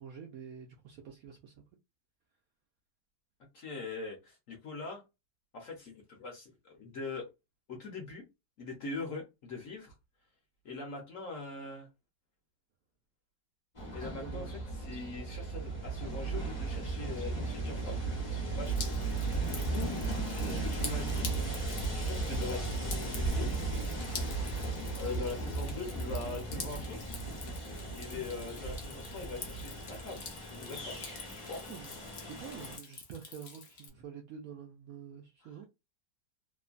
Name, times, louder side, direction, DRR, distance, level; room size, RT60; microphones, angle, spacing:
voice 1, 0.0-1.5 14.2-14.6 20.3-20.7 31.7-35.7, right 7 dB, 75° right, 0.8 m, -47 dB
voice 2, 3.5-5.0 5.5-7.3 7.7-8.3 8.6-9.9 10.6-11.9 13.9-18.0 18.3-18.7 19.5-19.9 20.4-21.3 21.9-23.5 25.0-27.0 27.9-31.0 31.3-31.7, left 4 dB, 55° left, 1.0 m, -42 dB
Train, 13.8-32.8, right 3 dB, 30° left, 0.6 m, -36 dB
Drip, 18.6-33.9, left 5 dB, 85° left, 0.5 m, -47 dB
3.0 x 2.1 x 2.4 m
omnidirectional pair, 1.9 m